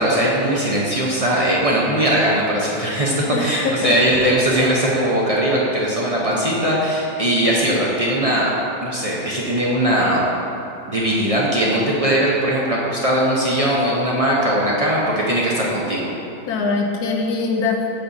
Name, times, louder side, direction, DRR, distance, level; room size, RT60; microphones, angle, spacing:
voice 1, 0.0-8.5 8.8-10.2 10.9-16.1, right 1 dB, 50° right, -5 dB, 0.4 m, -19 dB
voice 2, 3.3-4.0 16.5-17.8, left 4 dB, 70° left, 1 dB, 1.2 m, -22 dB
6.6 x 4.1 x 5.8 m, 2.7 s
omnidirectional pair, 1.8 m